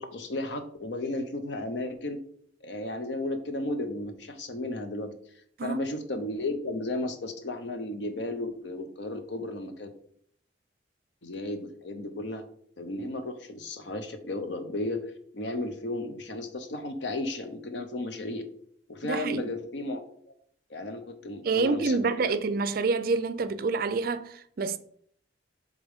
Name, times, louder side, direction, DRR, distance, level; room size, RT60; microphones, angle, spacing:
voice 1, 0.0-2.2 2.6-5.1 5.6-9.9 11.2-12.4 12.8-18.4 18.9-20.0 20.3-20.4 20.7-22.3, left 2 dB, 70° left, 0.8 m, -34 dB
voice 2, 19.0-19.4 21.4-24.8, right 4 dB, 50° right, 0.4 m, -27 dB
7.1 x 3.7 x 3.6 m
head